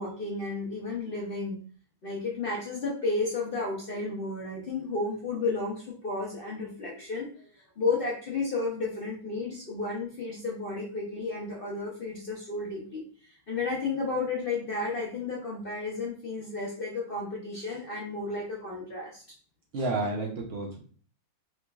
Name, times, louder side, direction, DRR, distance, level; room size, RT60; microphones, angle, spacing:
voice 1, 0.0-1.6 2.0-7.3 7.8-13.0 13.5-19.2 19.8-19.9, left 3 dB, 60° left, -4 dB, 0.5 m, -32 dB
voice 2, 19.7-20.8, right 2 dB, 80° right, 0 dB, 0.5 m, -30 dB
3.7 x 3.0 x 2.3 m, 0.43 s
omnidirectional pair, 1.9 m